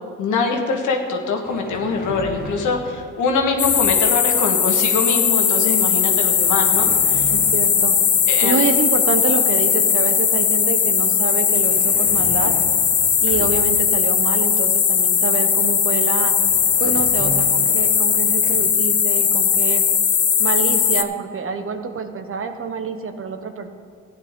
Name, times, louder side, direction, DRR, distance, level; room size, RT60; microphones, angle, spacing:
voice 1, 0.2-7.3 8.3-8.6, left 4 dB, 75° left, 2 dB, 1.7 m, -23 dB
sound 1, 1.4-4.1 6.1-8.9 11.1-14.0 15.9-16.0 16.2-18.6, right 2 dB, 30° right, 1.4 m, -36 dB
sound 2, 3.6-21.0, left 7 dB, 35° left, 0.7 m, -18 dB
voice 2, 7.3-8.0 8.4-12.5 13.2-16.3 16.8-19.8 20.4-23.7, right 5 dB, 45° right, 7 dB, 1.1 m, -26 dB
14.5 x 9.3 x 3.7 m, 2.4 s
cardioid pair, 90°, 30 cm